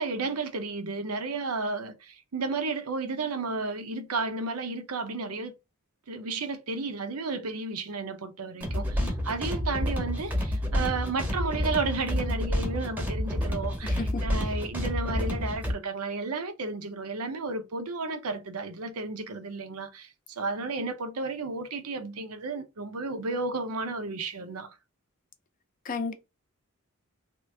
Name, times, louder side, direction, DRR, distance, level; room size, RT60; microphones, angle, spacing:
voice 1, 0.0-5.5 6.1-24.7, right 3 dB, 90° right, 0.7 m, -33 dB
sound 1, 8.6-15.7, left 1 dB, 10° right, 0.7 m, -29 dB
voice 2, 13.8-14.3 25.8-26.1, left 3 dB, 40° left, 0.5 m, -32 dB
3.0 x 2.5 x 3.3 m
head